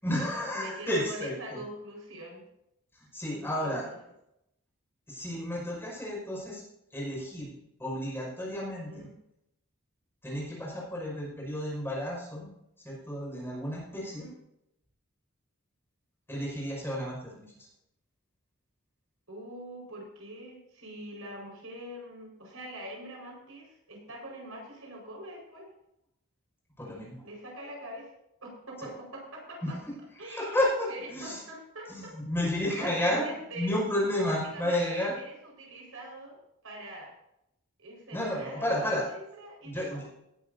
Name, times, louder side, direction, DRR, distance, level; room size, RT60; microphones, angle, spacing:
voice 1, 0.0-1.3 3.1-3.8 5.1-6.6 6.9-7.5 7.8-9.1 10.2-12.5 12.8-14.3 16.3-17.5 26.8-27.2 29.6-29.7 30.3-31.4 31.9-33.3 33.6-35.1 38.1-39.1 39.6-40.1, left 1 dB, 10° left, -4 dB, 5.5 m, -31 dB
voice 2, 0.5-2.4 3.3-3.9 8.9-9.1 13.9-14.3 19.3-25.7 27.2-28.1 28.4-29.6 30.2-30.6 30.9-32.1 32.7-33.8 34.3-36.4 36.6-37.1 37.8-40.1, right 1 dB, 75° right, -1 dB, 5.0 m, -43 dB
18.0 x 11.0 x 2.7 m, 0.82 s
head